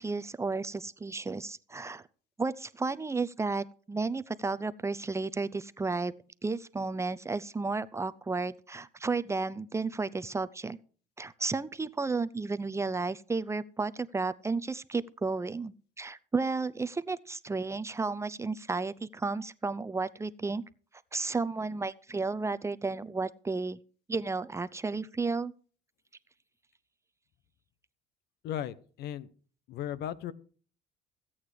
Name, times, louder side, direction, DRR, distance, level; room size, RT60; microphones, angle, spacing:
voice 1, 0.0-2.1 2.4-6.1 6.4-10.8 11.2-20.6 21.1-23.8 24.1-25.5, right 3 dB, 15° right, 14 dB, 0.6 m, -33 dB
voice 2, 28.4-29.3 29.7-30.3, left 11 dB, 75° left, 17 dB, 0.9 m, -36 dB
15.5 x 8.7 x 4.9 m, 0.42 s
cardioid pair, 110°, 17 cm